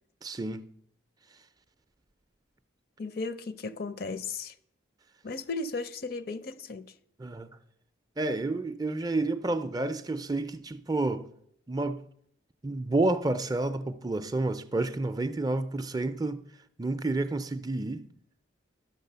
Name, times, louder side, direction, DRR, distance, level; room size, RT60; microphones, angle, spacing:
voice 1, 0.2-0.6 7.2-7.5 8.2-11.3 11.7-12.0 12.6-16.4 16.8-18.1, right 2 dB, 20° right, 0.4 m, -30 dB
voice 2, 3.0-4.5 5.2-6.9, left 3 dB, 50° left, 0.5 m, -35 dB
12.0 x 6.2 x 6.7 m
head